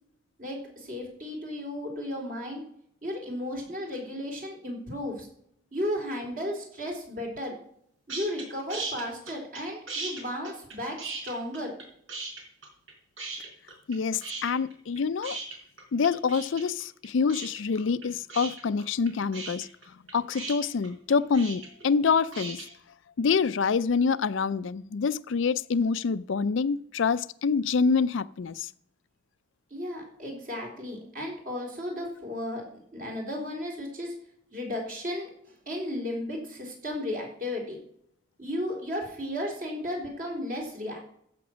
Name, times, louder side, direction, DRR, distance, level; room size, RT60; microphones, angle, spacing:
voice 1, 0.4-2.6 3.0-5.3 5.7-7.5 8.1-11.7 29.7-32.7 32.9-34.1 34.5-37.8 38.4-41.0, left 1 dB, 45° right, 3.8 m, -34 dB
sound 1, 8.1-8.4 8.7-9.6 9.9-11.8 12.1-12.9 13.2-13.9 14.2-22.7, right 3 dB, 80° right, 4.5 m, -37 dB
voice 2, 13.9-15.4 15.9-19.7 20.1-22.6 23.2-28.7, left 5 dB, 75° left, 0.4 m, -26 dB
14.5 x 6.0 x 6.1 m
head